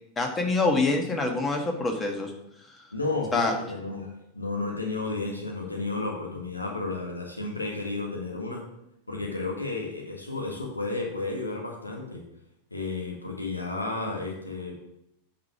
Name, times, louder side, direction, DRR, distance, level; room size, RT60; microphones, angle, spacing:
voice 1, 0.2-2.3 3.3-3.5, left 3 dB, 15° left, 3 dB, 1.6 m, -25 dB
voice 2, 2.9-8.6 9.1-12.2 12.7-14.8, left 3 dB, 85° left, 0 dB, 1.8 m, -32 dB
9.2 x 5.0 x 5.9 m, 0.81 s
figure-of-eight pair, 90°, 0 cm